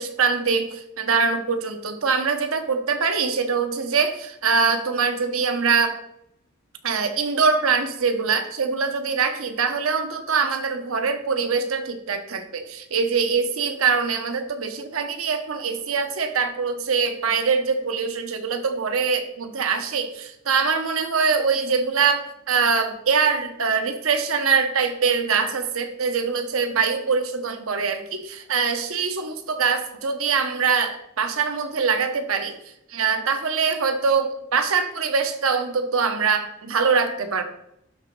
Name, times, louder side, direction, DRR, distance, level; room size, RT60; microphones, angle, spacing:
voice 1, 0.0-6.0 6.8-32.6 32.9-37.4, right 5 dB, 90° right, 7 dB, 1.0 m, -23 dB
11.5 x 3.9 x 4.6 m, 0.80 s
head